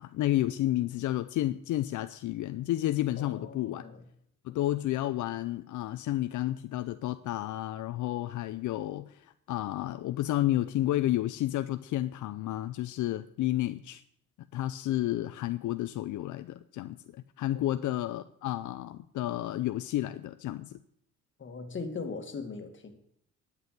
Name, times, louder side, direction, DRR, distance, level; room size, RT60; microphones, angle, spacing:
voice 1, 0.0-3.8 4.4-14.0 14.5-20.8, left 14 dB, 75° left, 0.6 m, -31 dB
voice 2, 3.2-4.0 17.5-17.9 21.4-22.9, left 4 dB, 40° left, 2.2 m, -40 dB
11.0 x 7.0 x 9.3 m
cardioid pair, 90°, 30 cm